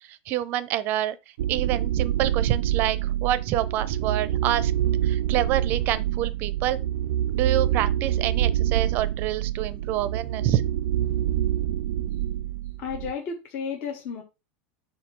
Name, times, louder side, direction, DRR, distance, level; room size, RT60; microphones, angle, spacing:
voice 1, 0.1-1.2 1.5-4.7 5.0-6.8 7.3-10.6, right 12 dB, 35° right, 0.6 m, -27 dB
sound 1, 1.4-13.1, right 11 dB, 90° right, 0.4 m, -26 dB
voice 2, 12.8-14.2, left 6 dB, 35° left, 1.2 m, -32 dB
8.1 x 2.7 x 6.1 m
supercardioid pair, 175°, 6 cm